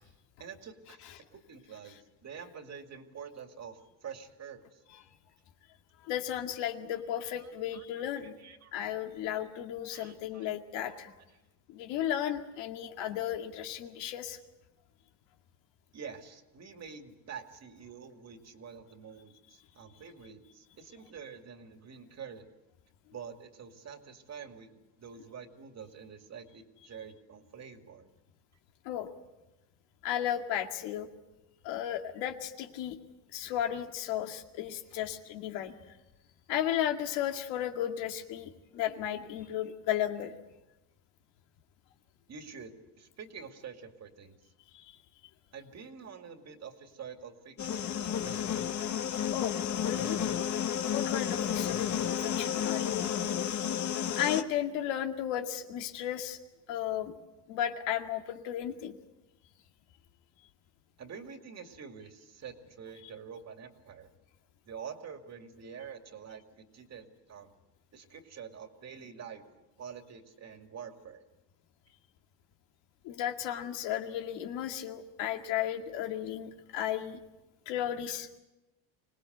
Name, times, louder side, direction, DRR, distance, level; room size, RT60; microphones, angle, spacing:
voice 1, 0.4-1.0 1.3-4.8 7.4-7.8 8.2-8.7 9.9-10.5 11.3-11.4 15.9-22.5 23.1-28.1 42.3-44.4 45.5-48.7 61.0-64.1 64.7-67.5 67.9-71.2, right 6 dB, 40° right, 6 dB, 2.4 m, -47 dB
voice 2, 6.0-8.4 8.7-11.1 11.7-14.4 28.9-29.1 30.0-31.1 31.6-33.0 33.3-35.7 36.5-40.3 49.3-49.5 49.8-50.2 50.9-53.3 54.1-56.4 56.7-57.1 57.5-58.9 73.0-77.2 77.7-78.4, left 11 dB, 90° left, 4 dB, 2.2 m, -34 dB
sound 1, 47.6-54.4, left 9 dB, 40° left, 1.4 m, -32 dB
25.0 x 19.0 x 8.0 m, 1.0 s
cardioid pair, 130°, 42 cm